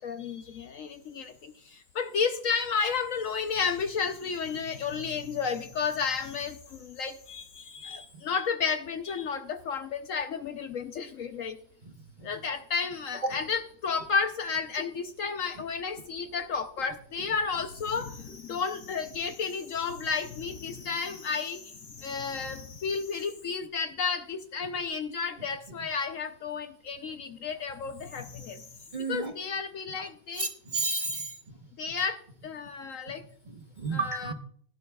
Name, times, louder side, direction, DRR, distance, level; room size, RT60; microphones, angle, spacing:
voice 1, 0.0-11.6 12.2-28.7 29.1-30.5 31.8-33.2 33.9-34.3, left 5 dB, 60° left, 8 dB, 0.9 m, -32 dB
voice 2, 28.9-29.3 30.4-31.3 33.5-34.3, right 3 dB, 35° right, 4 dB, 1.0 m, -32 dB
17.5 x 11.0 x 2.3 m, 0.62 s
omnidirectional pair, 1.7 m